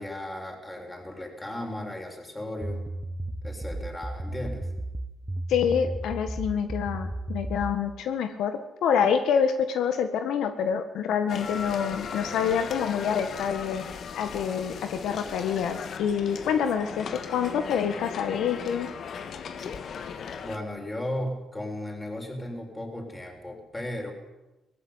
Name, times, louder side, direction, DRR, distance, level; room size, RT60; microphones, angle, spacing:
voice 1, 0.0-2.8 3.4-4.7 20.4-24.1, left 1 dB, 15° left, 2 dB, 6.5 m, -35 dB
sound 1, 2.6-7.8, right 1 dB, 10° right, 1.4 m, -34 dB
voice 2, 5.5-13.8 14.2-18.9, left 7 dB, 80° left, 9 dB, 1.6 m, -27 dB
sound 2, 11.3-20.6, left 6 dB, 60° left, 1.8 m, -37 dB
19.5 x 15.0 x 9.8 m, 1.0 s
cardioid pair, 90°, 0 cm